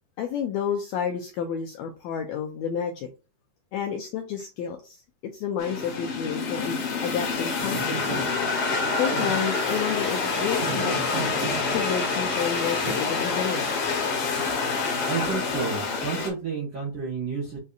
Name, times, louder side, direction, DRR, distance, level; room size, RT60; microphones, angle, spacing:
voice 1, 0.2-3.1 3.7-5.0 5.3-8.2 8.9-13.8, left 8 dB, 80° left, 4 dB, 1.6 m, -30 dB
sound 1, 5.6-16.3, left 4 dB, 60° left, 1.7 m, -27 dB
sound 2, 7.6-8.6 9.1-12.9, right 5 dB, 75° right, 1.4 m, -36 dB
voice 2, 15.1-17.6, right 5 dB, 55° right, -5 dB, 1.4 m, -30 dB
6.4 x 2.7 x 2.4 m, 0.31 s
omnidirectional pair, 3.7 m